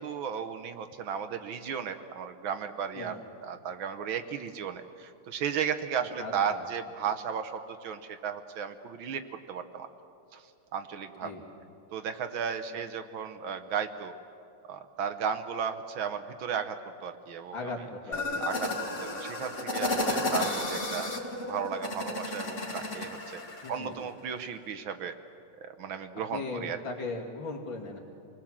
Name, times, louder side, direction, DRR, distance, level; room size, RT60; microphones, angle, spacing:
voice 1, 0.0-9.2 9.5-9.9 10.3-10.5 10.7-11.3 11.9-14.1 14.7-17.7 18.4-21.1 21.5-23.4 23.7-25.1 25.6-26.8, right 7 dB, 70° right, 8 dB, 1.6 m, -35 dB
voice 2, 6.2-6.6 11.2-11.4 17.5-18.5 23.6-24.0 26.3-28.0, left 3 dB, 60° left, -1 dB, 3.1 m, -38 dB
sound 1, 18.1-23.7, left 2 dB, 35° left, 2.2 m, -32 dB
27.0 x 20.0 x 7.4 m, 2.7 s
omnidirectional pair, 2.4 m